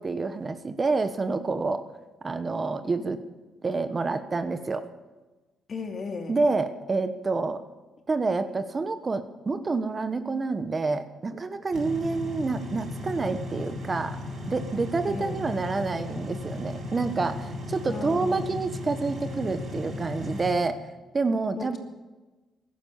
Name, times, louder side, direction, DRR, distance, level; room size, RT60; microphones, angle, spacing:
voice 1, 0.0-1.8 2.2-3.2 3.6-4.8 6.3-7.6 8.1-14.2 14.5-20.8 21.1-21.8, right 3 dB, 30° right, 10 dB, 1.1 m, -28 dB
voice 2, 5.7-6.4 15.1-15.5 17.9-18.6 21.5-21.8, left 4 dB, 45° left, 4 dB, 2.6 m, -36 dB
sound 1, 11.7-20.5, left 2 dB, 55° right, 6.1 m, -36 dB
16.0 x 12.0 x 7.2 m, 1.2 s
cardioid pair, 90°, 0 cm